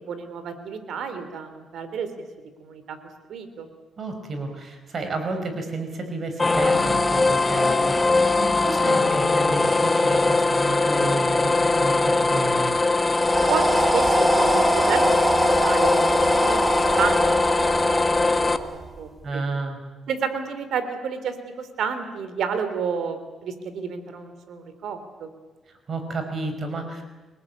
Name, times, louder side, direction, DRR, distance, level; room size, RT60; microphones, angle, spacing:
voice 1, 0.1-2.3 2.6-3.0 3.3-3.7 13.4-16.0 16.4-19.1 20.1-25.3, right 6 dB, 70° right, 10 dB, 3.4 m, -31 dB
voice 2, 4.0-12.8 19.2-19.8 25.9-27.0, right 2 dB, 45° right, 6 dB, 5.5 m, -31 dB
sound 1, 6.4-18.6, left 3 dB, 20° left, 1.4 m, -21 dB
sound 2, 13.1-19.0, right 2 dB, 20° right, 2.5 m, -25 dB
28.5 x 20.0 x 8.7 m, 1.2 s
cardioid pair, 90°, 0 cm